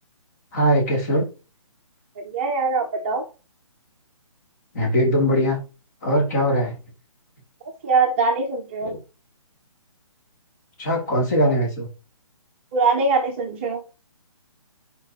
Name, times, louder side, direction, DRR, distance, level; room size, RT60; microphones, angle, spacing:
voice 1, 0.5-1.2 4.7-5.6 6.0-6.8 8.8-9.0 10.8-11.9, equal, 30° left, 0 dB, 2.7 m, -21 dB
voice 2, 2.2-3.2 7.8-8.9 12.7-13.8, right 4 dB, 20° right, 0 dB, 0.9 m, -22 dB
10.0 x 5.1 x 2.9 m, 0.31 s
hypercardioid pair, 170°, 18 cm